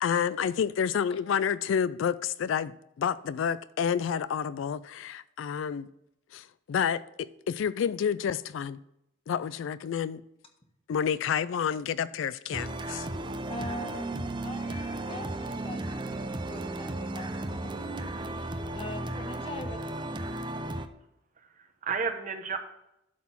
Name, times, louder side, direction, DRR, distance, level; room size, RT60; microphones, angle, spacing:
voice 1, 0.0-5.9 6.3-8.8 9.3-10.2 10.9-13.1, left 7 dB, 75° left, 0.3 m, -29 dB
sound 1, 12.5-20.9, right 2 dB, 25° right, 0.6 m, -35 dB
voice 2, 13.5-20.3, left 1 dB, 30° left, 1.4 m, -43 dB
voice 3, 21.4-22.6, right 5 dB, 45° right, 0.9 m, -33 dB
12.0 x 4.1 x 5.6 m
head